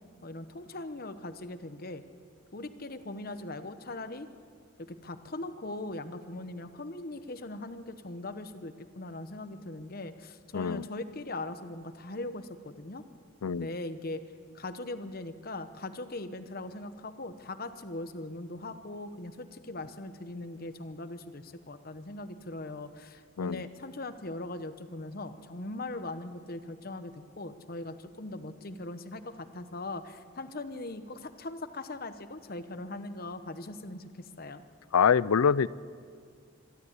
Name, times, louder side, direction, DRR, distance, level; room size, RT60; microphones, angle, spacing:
voice 1, 0.2-2.0 2.5-4.3 4.9-13.0 13.5-14.2 14.5-34.6, left 2 dB, 45° left, 10 dB, 1.0 m, -40 dB
voice 2, 10.5-10.8 13.4-13.7 23.4-23.6 34.9-35.7, left 6 dB, 85° left, 20 dB, 0.5 m, -24 dB
26.0 x 13.0 x 8.2 m, 2.1 s
head